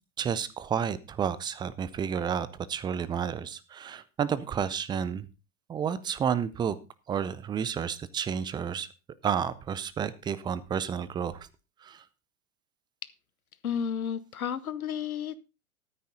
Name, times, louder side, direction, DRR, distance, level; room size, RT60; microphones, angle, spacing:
voice 1, 0.2-5.3 5.7-6.8 7.1-8.9 9.2-11.5 11.8-12.0, right 7 dB, 10° right, 17 dB, 0.5 m, -31 dB
voice 2, 13.6-15.4, left 8 dB, 75° left, 16 dB, 1.1 m, -32 dB
13.5 x 9.3 x 3.9 m, 0.29 s
figure-of-eight pair, 95°, 44 cm